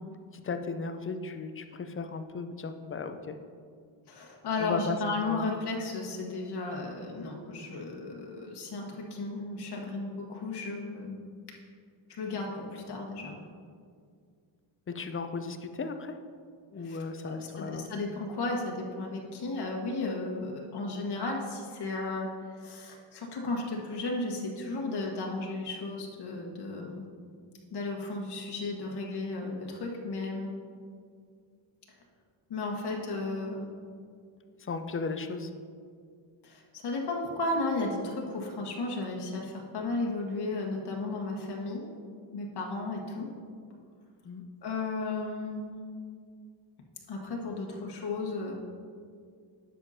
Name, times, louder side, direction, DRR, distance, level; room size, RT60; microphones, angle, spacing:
voice 1, 0.0-3.4 4.6-5.4 14.9-16.1 16.7-17.9 34.6-35.5 44.2-44.4, left 4 dB, 30° left, 8 dB, 0.5 m, -36 dB
voice 2, 4.1-11.2 12.1-13.4 16.8-17.0 17.2-22.3 22.6-27.1 27.7-30.5 32.5-33.7 36.4-41.9 42.3-43.3 44.6-45.6 47.1-48.5, left 2 dB, 55° left, -1 dB, 1.5 m, -34 dB
10.0 x 7.3 x 2.8 m, 2.1 s
cardioid pair, 95°, 48 cm